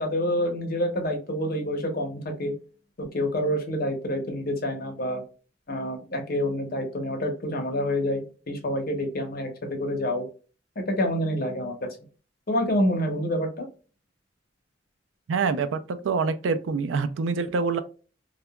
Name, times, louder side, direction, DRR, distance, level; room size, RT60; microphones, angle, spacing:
voice 1, 0.0-2.5 3.0-5.2 5.7-10.2 11.0-11.7 12.5-13.6, equal, 50° left, 0.8 m, -27 dB
voice 2, 15.3-17.8, right 4 dB, 90° right, 0.4 m, -26 dB
2.8 x 2.2 x 2.2 m
head